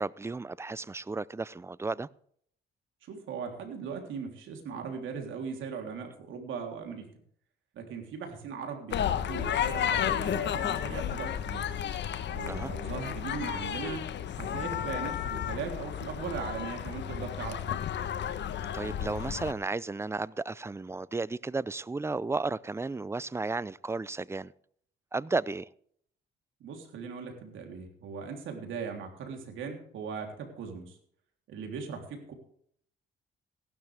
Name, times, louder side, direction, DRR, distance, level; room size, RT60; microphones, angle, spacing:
voice 1, 0.0-2.1 12.5-12.7 18.7-24.5 25.1-25.7, right 3 dB, 15° right, 0.5 m, -33 dB
voice 2, 3.1-7.1 7.7-11.6 12.3-14.0 14.4-17.8 26.6-31.0 31.5-32.3, right 6 dB, 80° right, 3.4 m, -39 dB
sound 1, 8.9-19.5, left 9 dB, 65° left, 1.2 m, -32 dB
16.0 x 12.5 x 3.5 m
cardioid pair, 90°, 20 cm